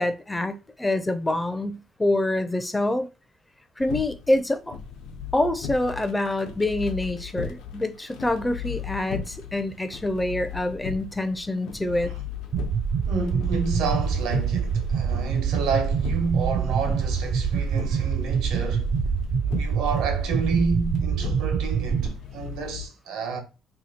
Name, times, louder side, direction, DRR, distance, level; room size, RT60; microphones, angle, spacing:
voice 1, 0.0-3.1 3.8-4.8 5.3-12.1, left 1 dB, 10° left, 0.4 m, -26 dB
sound 1, 3.8-22.8, left 8 dB, 90° left, 0.8 m, -37 dB
sound 2, 12.5-22.1, right 7 dB, 60° right, 0.4 m, -25 dB
voice 2, 13.1-18.9 19.6-23.4, right 4 dB, 85° right, 1.0 m, -29 dB
2.8 x 2.6 x 4.2 m
cardioid pair, 125°, 0 cm